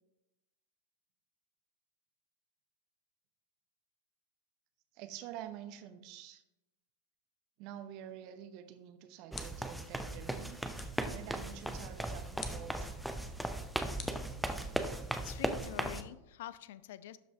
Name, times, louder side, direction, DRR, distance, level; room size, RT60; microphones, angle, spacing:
voice 1, 5.0-6.4 7.6-10.6 10.9-12.9 14.8-15.0, right 10 dB, 40° right, 9 dB, 0.8 m, -48 dB
sound 1, 8.7-9.9 10.8-11.1 12.4-12.8 14.0-14.9, left 7 dB, 30° left, 0.9 m, -49 dB
sound 2, 9.3-16.0, right 1 dB, ahead, 0.6 m, -37 dB
voice 2, 15.2-17.2, left 12 dB, 55° left, 16 dB, 0.4 m, -46 dB
12.0 x 5.4 x 3.3 m, 0.92 s
figure-of-eight pair, 90°, 0 cm